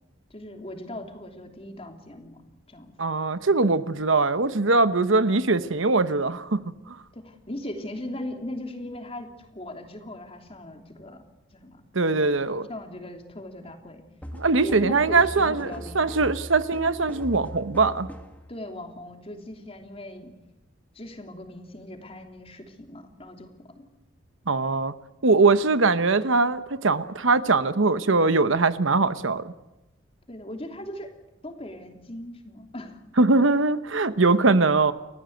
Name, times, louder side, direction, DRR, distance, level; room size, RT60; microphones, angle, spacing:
voice 1, 0.3-2.4 2.7-2.9 7.1-11.2 11.5-11.8 12.1-12.3 12.7-14.0 14.6-16.2 18.5-20.3 20.9-23.8 30.3-31.1 31.4-33.0, left 1 dB, 30° left, 4 dB, 3.1 m, -39 dB
voice 2, 3.0-6.6 11.9-12.7 14.3-18.1 24.5-24.9 25.2-29.5 33.2-34.9, right 3 dB, 75° right, 13 dB, 1.1 m, -21 dB
sound 1, 14.2-18.4, equal, 10° left, 2.1 m, -40 dB
30.0 x 14.5 x 8.0 m, 1.0 s
head